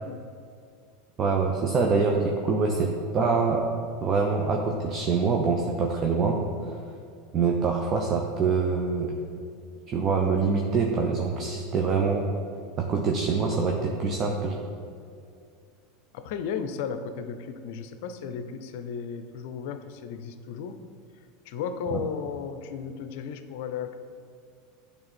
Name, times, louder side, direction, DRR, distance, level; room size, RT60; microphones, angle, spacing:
voice 1, 1.2-3.7 4.0-6.8 7.3-9.1 9.9-12.3 12.8-14.6, right 4 dB, 35° right, 0 dB, 0.7 m, -25 dB
voice 2, 16.1-20.8 21.4-23.9, left 7 dB, 65° left, 9 dB, 0.5 m, -34 dB
8.7 x 3.4 x 4.3 m, 2.3 s
hypercardioid pair, 100°, 0 cm